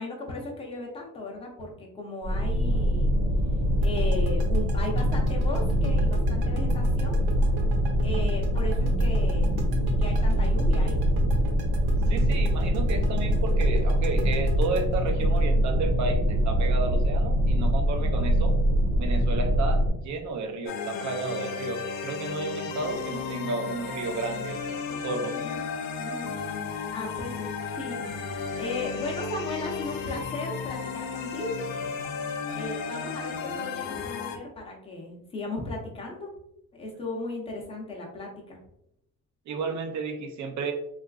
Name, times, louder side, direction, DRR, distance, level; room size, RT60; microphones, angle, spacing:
voice 1, 0.0-3.1 3.8-7.3 8.0-9.6 10.0-11.0 25.2-25.6 26.0-26.4 26.9-31.6 32.5-36.3 36.7-38.6, left 2 dB, 15° left, -2 dB, 0.7 m, -36 dB
sound 1, 2.2-19.9, equal, 65° right, 1.2 m, -24 dB
sound 2, 3.8-16.6, right 2 dB, 85° right, 0.7 m, -39 dB
voice 2, 12.1-18.5 19.0-24.6 24.9-25.4 39.5-40.7, right 3 dB, 50° right, 5 dB, 0.5 m, -32 dB
sound 3, 20.7-34.4, left 5 dB, 70° left, 0.6 m, -34 dB
3.6 x 2.4 x 2.3 m, 0.79 s
cardioid pair, 155°, 38 cm